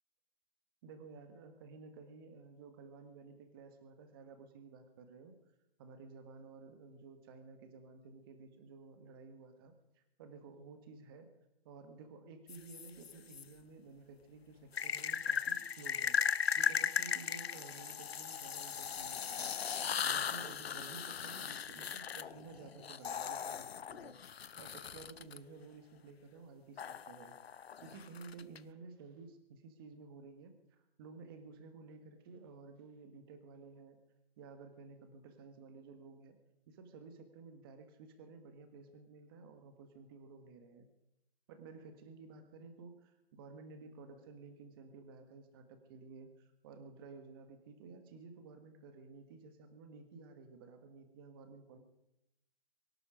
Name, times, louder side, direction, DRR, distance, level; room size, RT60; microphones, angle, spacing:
voice 1, 0.8-5.4 5.8-11.3 11.6-34.0 34.4-36.4 36.7-40.9 41.5-51.8, right 4 dB, 25° right, 7 dB, 1.6 m, -54 dB
sound 1, 12.5-13.4 14.7-25.4 26.8-28.6, left 7 dB, 80° left, 0.8 m, -37 dB
23.0 x 12.0 x 5.1 m, 0.87 s
hypercardioid pair, 160°, 30 cm